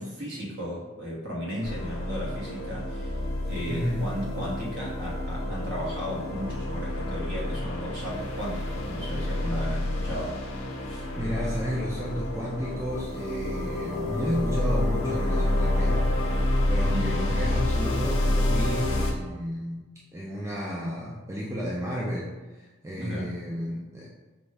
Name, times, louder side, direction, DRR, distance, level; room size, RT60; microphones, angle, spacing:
voice 1, 0.0-10.3 10.8-11.1 16.9-17.4 22.9-23.4, equal, 55° right, -6 dB, 1.3 m, -35 dB
sound 1, 1.6-19.1, left 1 dB, 70° left, 0.7 m, -28 dB
voice 2, 3.7-4.1 11.2-16.4 16.7-19.8 20.1-24.1, equal, 15° right, -5 dB, 0.4 m, -32 dB
5.1 x 2.4 x 3.3 m, 1.2 s
head